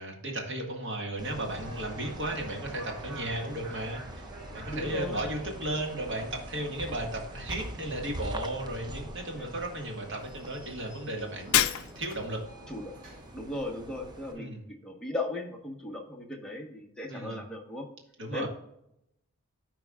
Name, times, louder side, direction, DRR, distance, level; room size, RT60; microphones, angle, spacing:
voice 1, 0.0-4.3 4.5-12.4 14.4-14.6 17.1-17.4 18.2-18.5, right 1 dB, 55° right, 1 dB, 1.7 m, -35 dB
sound 1, 1.2-14.3, right 1 dB, 20° right, 0.5 m, -44 dB
sound 2, 1.6-14.4, right 2 dB, 75° right, 2.5 m, -49 dB
voice 2, 4.7-5.2 9.3-9.5 12.7-12.9 13.3-17.9 18.3-18.5, left 2 dB, 5° left, -1 dB, 1.2 m, -37 dB
Shatter, 11.5-12.3, left 11 dB, 65° left, 0.5 m, -26 dB
12.5 x 4.6 x 2.4 m, 0.79 s
head